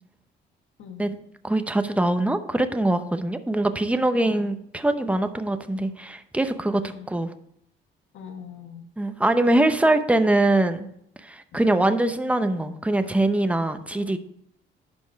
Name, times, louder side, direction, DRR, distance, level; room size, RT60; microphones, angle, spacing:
voice 1, 1.4-7.3 9.0-10.9 11.2-14.2, right 1 dB, 5° right, 8 dB, 0.8 m, -23 dB
voice 2, 4.2-4.5 6.7-7.1 8.1-8.8 11.5-11.6 13.9-14.1, left 7 dB, 80° left, 5 dB, 1.4 m, -42 dB
11.0 x 5.3 x 4.6 m, 0.72 s
cardioid pair, 90°, 20 cm